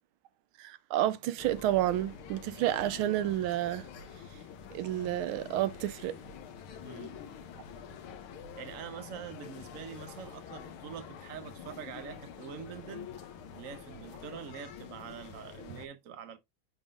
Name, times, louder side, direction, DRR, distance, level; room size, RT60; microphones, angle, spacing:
voice 1, 0.6-3.9 4.7-6.1, right 13 dB, 90° right, 1.5 m, -30 dB
sound 1, 1.4-15.9, left 7 dB, 90° left, 1.8 m, -47 dB
voice 2, 6.8-7.2 8.6-13.1 13.5-16.4, right 8 dB, 50° right, 1.1 m, -45 dB
10.5 x 3.6 x 2.5 m
omnidirectional pair, 2.3 m